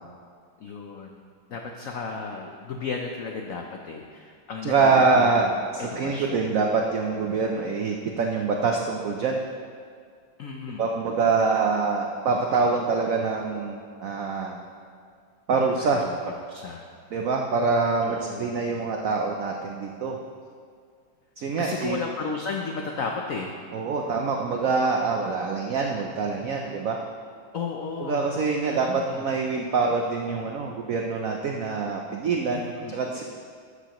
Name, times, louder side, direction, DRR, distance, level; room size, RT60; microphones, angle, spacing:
voice 1, 0.6-1.2 1.5-6.4 10.4-10.9 15.8-16.2 16.5-16.8 18.0-18.5 21.6-23.6 27.5-28.2 28.6-29.3 32.5-33.0, left 4 dB, 80° left, 2 dB, 0.7 m, -34 dB
voice 2, 4.6-5.5 5.7-9.4 10.8-14.6 15.5-16.1 17.1-20.2 21.4-22.0 23.7-27.0 28.0-33.3, right 4 dB, 85° right, 1 dB, 0.7 m, -25 dB
12.0 x 8.1 x 3.0 m, 2.1 s
omnidirectional pair, 2.2 m